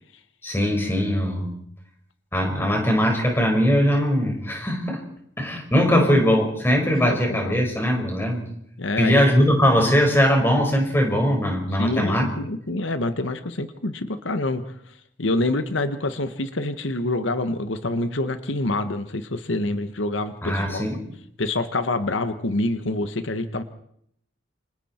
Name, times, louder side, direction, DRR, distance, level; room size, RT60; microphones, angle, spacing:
voice 1, 0.4-1.4 2.3-5.0 5.4-8.4 9.0-12.3 20.4-21.0, equal, 10° left, 2 dB, 5.1 m, -20 dB
voice 2, 6.8-7.6 8.8-9.2 11.8-20.9 21.4-23.6, left 2 dB, 90° left, 9 dB, 1.3 m, -27 dB
28.5 x 26.5 x 4.4 m, 0.70 s
head